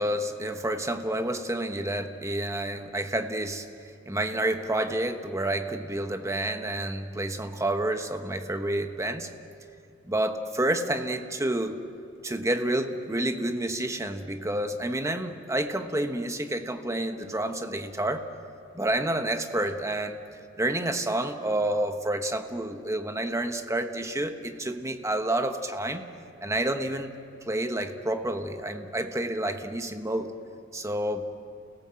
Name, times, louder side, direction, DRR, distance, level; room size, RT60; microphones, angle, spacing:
voice 1, 0.0-3.7 4.1-9.3 10.0-11.8 12.2-18.3 18.7-20.2 20.6-26.1 26.4-27.1 27.5-30.4 30.7-31.3, right 1 dB, 15° right, 7 dB, 1.2 m, -29 dB
29.5 x 17.5 x 7.8 m, 2.6 s
head